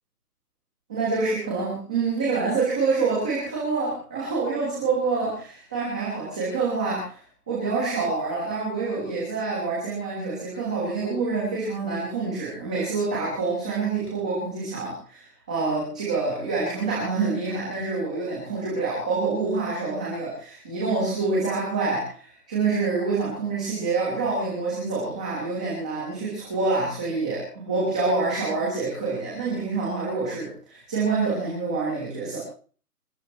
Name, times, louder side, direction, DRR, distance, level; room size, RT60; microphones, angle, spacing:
voice 1, 0.9-7.2 7.5-32.4, right 4 dB, 5° right, -6 dB, 1.3 m, -27 dB
26.5 x 17.0 x 3.1 m, 0.41 s
hypercardioid pair, 175°, 47 cm